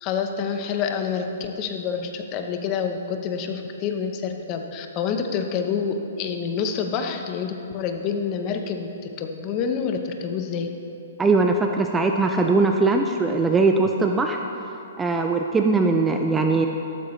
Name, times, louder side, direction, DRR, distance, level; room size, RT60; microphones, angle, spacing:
voice 1, 0.0-8.9 9.2-10.7, left 6 dB, 30° left, 5 dB, 0.9 m, -27 dB
voice 2, 11.2-14.4 15.0-16.7, right 3 dB, 10° right, 3 dB, 0.4 m, -20 dB
14.0 x 12.5 x 3.2 m, 2.8 s
hypercardioid pair, 160°, 0 cm